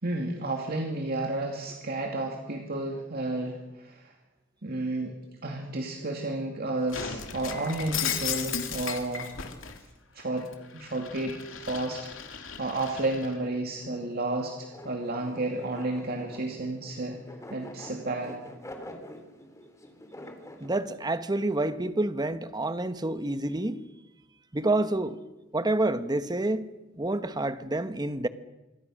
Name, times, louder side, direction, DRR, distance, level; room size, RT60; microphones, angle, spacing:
voice 1, 0.0-4.1 4.6-5.2 5.4-9.3 10.1-10.5 10.7-12.1 12.6-17.2 17.5-18.4, right 2 dB, 50° right, 2.5 m, -31 dB
Shatter, 6.9-9.8 10.2-13.3, left 7 dB, 70° left, 2.8 m, -35 dB
sound 1, 13.8-20.7, left 1 dB, 15° left, 3.2 m, -46 dB
voice 2, 20.6-23.8 24.5-25.2 25.5-26.7 27.0-28.3, right 2 dB, 20° right, 1.1 m, -28 dB
27.0 x 23.0 x 6.4 m
head